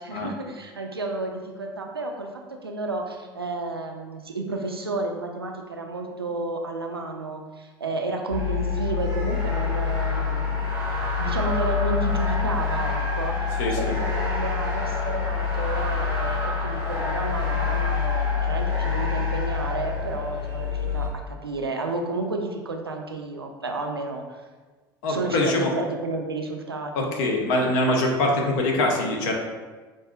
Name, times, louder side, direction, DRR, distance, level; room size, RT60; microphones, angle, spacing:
voice 1, 0.0-10.6 11.2-24.4 25.1-27.1, right 2 dB, 90° right, 3 dB, 0.4 m, -31 dB
sound 1, 8.3-21.1, left 5 dB, 90° left, 1.4 m, -26 dB
voice 2, 13.6-13.9 25.0-25.7 27.0-29.3, left 2 dB, 60° left, 1 dB, 0.7 m, -23 dB
5.6 x 2.6 x 2.2 m, 1.3 s
figure-of-eight pair, 70°, 12 cm